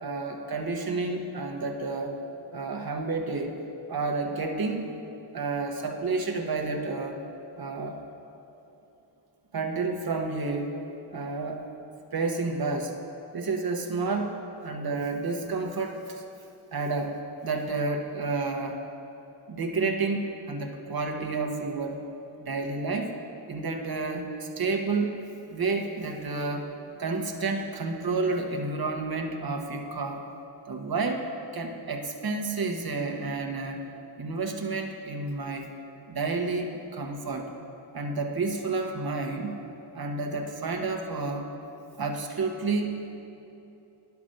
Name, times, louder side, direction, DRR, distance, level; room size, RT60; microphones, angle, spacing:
voice 1, 0.0-2.2 2.5-3.5 3.9-4.9 5.3-7.2 7.6-8.0 9.5-10.8 11.1-11.7 12.1-12.9 13.3-14.4 14.6-16.2 16.7-18.8 19.5-22.0 22.4-23.1 23.5-25.1 25.5-26.7 27.0-30.2 30.7-31.3 31.5-33.9 34.2-35.7 36.1-37.5 37.9-39.5 39.9-41.5 42.0-42.9, right 3 dB, 50° right, 3 dB, 1.1 m, -30 dB
9.9 x 5.9 x 6.4 m, 3.0 s
cardioid pair, 50°, 47 cm